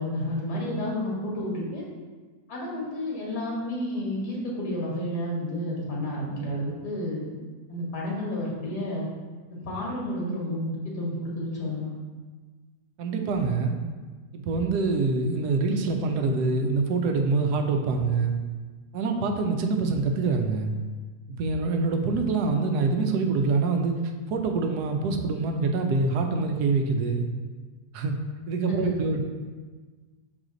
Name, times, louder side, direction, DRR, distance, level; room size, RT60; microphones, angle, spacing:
voice 1, 0.0-1.9 2.5-7.3 7.7-9.1 9.5-11.9 28.7-28.9, left 1 dB, 80° left, -4 dB, 2.2 m, -31 dB
voice 2, 13.0-13.8 14.3-18.3 18.9-20.7 21.3-24.0 24.3-27.3 27.9-28.1 28.5-29.2, right 4 dB, 80° right, 4 dB, 1.2 m, -25 dB
6.3 x 4.1 x 3.9 m, 1.4 s
omnidirectional pair, 1.7 m